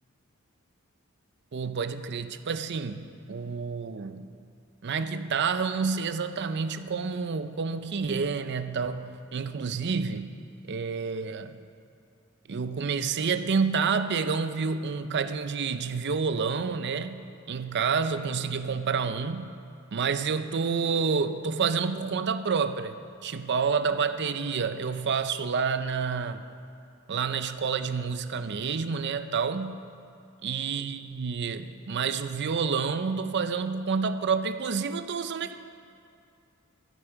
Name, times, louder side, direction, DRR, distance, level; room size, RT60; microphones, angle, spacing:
voice 1, 1.5-4.3 4.8-10.3 10.7-11.6 12.5-17.2 17.5-19.6 19.9-26.5 27.1-29.9 30.4-35.6, right 5 dB, 55° right, 11 dB, 0.5 m, -29 dB
12.0 x 12.0 x 4.7 m, 2.5 s
head